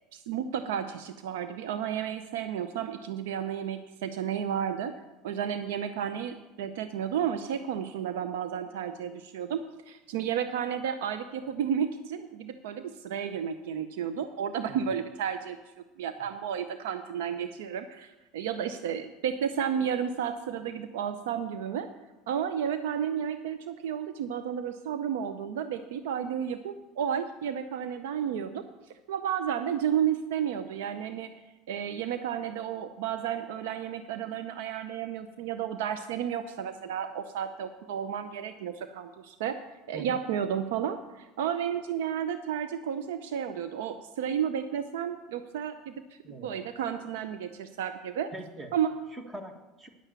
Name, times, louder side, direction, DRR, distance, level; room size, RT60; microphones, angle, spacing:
voice 1, 0.1-4.9 5.2-9.6 9.9-15.6 16.0-21.9 22.3-28.6 29.1-31.3 31.7-39.6 39.9-45.9 46.3-48.3 48.7-48.9, right 8 dB, 85° right, 10 dB, 0.6 m, -32 dB
voice 2, 46.2-46.6 48.3-48.7 49.1-49.9, right 1 dB, 20° right, 6 dB, 1.5 m, -43 dB
10.5 x 7.4 x 6.8 m, 1.1 s
supercardioid pair, 105°, 0 cm